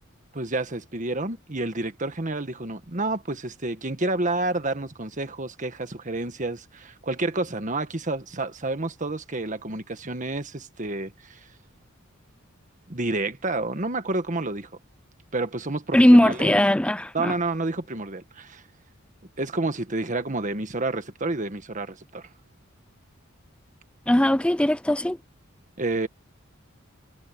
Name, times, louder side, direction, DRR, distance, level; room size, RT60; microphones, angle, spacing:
voice 1, 0.3-11.4 12.9-14.7 15.3-16.6 17.1-18.6 19.4-22.3 25.8-26.1, right 2 dB, 40° right, 1.6 m, -29 dB
voice 2, 15.9-17.3 24.1-25.2, left 1 dB, 5° left, 0.4 m, -19 dB
head